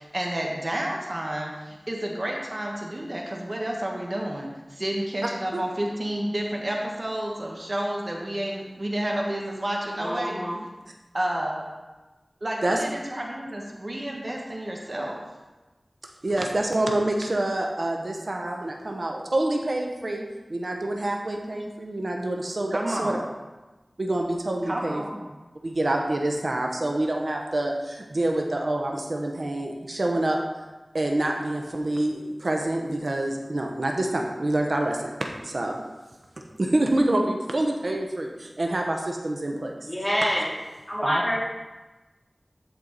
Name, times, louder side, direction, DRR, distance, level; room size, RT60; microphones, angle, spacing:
voice 1, 0.0-10.4 11.1-11.7 12.4-15.2 22.7-23.3 24.6-25.3 41.0-41.4, right 1 dB, 45° right, -1 dB, 1.3 m, -30 dB
voice 2, 10.0-10.6 39.9-40.5 40.9-41.4, equal, 15° left, -6 dB, 2.8 m, -26 dB
voice 3, 16.2-20.2 20.5-23.2 24.0-25.0 25.6-30.4 30.9-35.8 36.6-39.9, right 1 dB, 70° right, 2 dB, 0.9 m, -27 dB
13.0 x 4.5 x 4.1 m, 1.2 s
wide cardioid pair, 45°, 0 cm